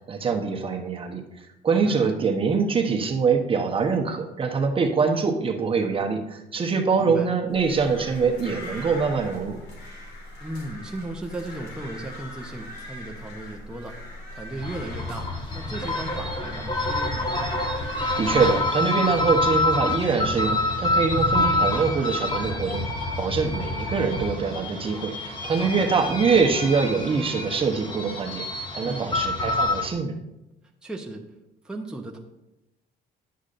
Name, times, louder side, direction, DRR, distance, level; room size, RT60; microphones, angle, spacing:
voice 1, 0.1-1.2 1.6-9.6 18.2-30.1, right 5 dB, 30° right, 3 dB, 0.9 m, -24 dB
voice 2, 7.0-7.3 10.4-14.0 14.3-15.3 15.5-17.3 25.6-25.9 28.8-29.2 30.8-31.2 31.6-32.2, right 1 dB, 5° right, 1 dB, 0.8 m, -36 dB
sound 1, 7.5-18.6, left 1 dB, 90° left, 3.1 m, -40 dB
sound 2, 14.6-29.9, left 2 dB, 30° left, 1.4 m, -27 dB
10.0 x 8.2 x 2.6 m, 0.93 s
cardioid pair, 110°, 17 cm